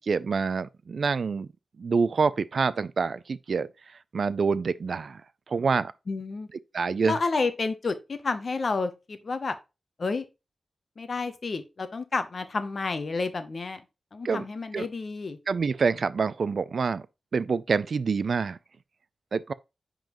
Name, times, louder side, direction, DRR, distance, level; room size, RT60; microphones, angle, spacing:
voice 1, 0.1-1.5 1.8-3.7 4.1-5.2 5.5-5.9 6.7-7.2 14.2-14.5 14.7-14.9 15.5-17.0 17.3-18.6 19.3-19.5, right 5 dB, 55° right, 0.3 m, -26 dB
voice 2, 6.1-6.5 7.0-9.6 10.0-10.2 11.0-13.8 14.1-15.4, left 4 dB, 45° left, 0.8 m, -30 dB
10.0 x 3.8 x 3.0 m
wide cardioid pair, 160°, 0 cm